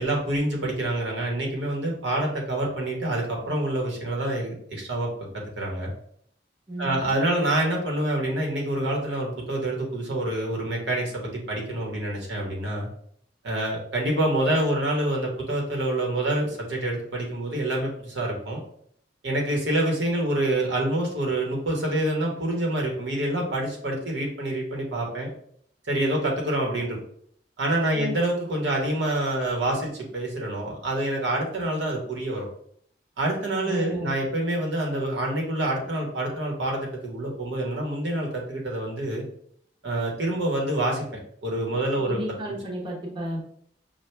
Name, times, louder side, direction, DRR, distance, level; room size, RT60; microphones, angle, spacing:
voice 1, 0.0-5.9 6.8-12.9 13.4-18.6 19.2-25.3 25.9-27.0 27.6-32.5 33.2-39.2 39.8-41.1 41.4-42.2, right 1 dB, 85° right, -1 dB, 1.2 m, -27 dB
voice 2, 6.7-7.1 27.9-28.1 33.6-34.1 42.0-43.4, equal, 25° right, -3 dB, 1.0 m, -33 dB
5.9 x 2.4 x 3.3 m, 0.65 s
head